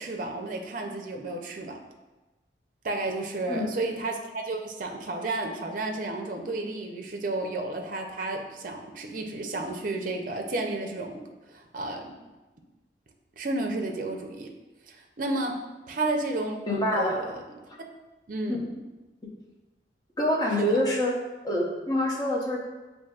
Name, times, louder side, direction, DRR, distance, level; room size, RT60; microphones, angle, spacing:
voice 1, 0.0-1.8 2.8-11.2 11.5-12.1 13.4-14.5 14.9-15.6 15.9-17.4 18.3-18.8 20.7-20.8, right 2 dB, 50° right, 2 dB, 0.5 m, -32 dB
voice 2, 16.7-17.3 18.5-18.6 20.2-21.2 21.4-22.7, left 1 dB, 20° left, -3 dB, 0.7 m, -26 dB
7.2 x 2.6 x 2.4 m, 1.1 s
head